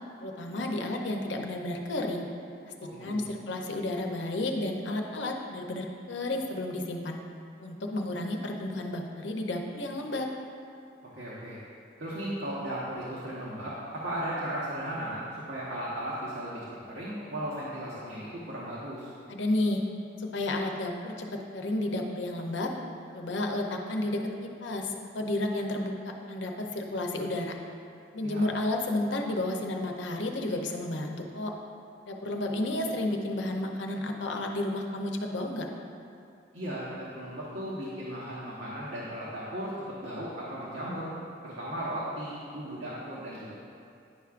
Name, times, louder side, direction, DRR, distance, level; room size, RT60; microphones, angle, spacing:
voice 1, 0.2-2.3 2.7-2.8 3.0-7.2 7.6-10.3 19.3-19.8 20.2-22.7 23.1-27.5 28.1-31.5 32.1-35.7, left 1 dB, 85° left, 2 dB, 0.7 m, -32 dB
voice 2, 2.8-3.2 11.1-11.6 12.0-15.2 15.5-16.6 16.9-19.1 28.2-28.5 36.5-39.7 40.0-41.1 41.4-43.5, right 1 dB, 85° right, -8 dB, 1.1 m, -36 dB
10.0 x 5.8 x 2.5 m, 2.5 s
head